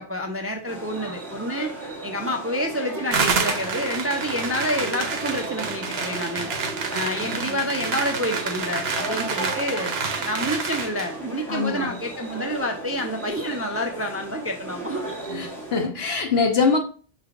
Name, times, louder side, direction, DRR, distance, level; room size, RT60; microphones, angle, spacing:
voice 1, 0.0-1.7 2.0-6.5 6.9-9.9 10.3-15.0, equal, 25° right, 0.3 m, -28 dB
sound 1, 0.7-15.9, right 2 dB, ahead, 1.4 m, -35 dB
sound 2, 3.1-11.1, right 5 dB, 80° right, 0.9 m, -28 dB
voice 2, 7.2-7.6 11.5-11.9 15.3-16.8, left 4 dB, 80° left, 1.2 m, -24 dB
5.8 x 3.3 x 2.4 m
omnidirectional pair, 1.0 m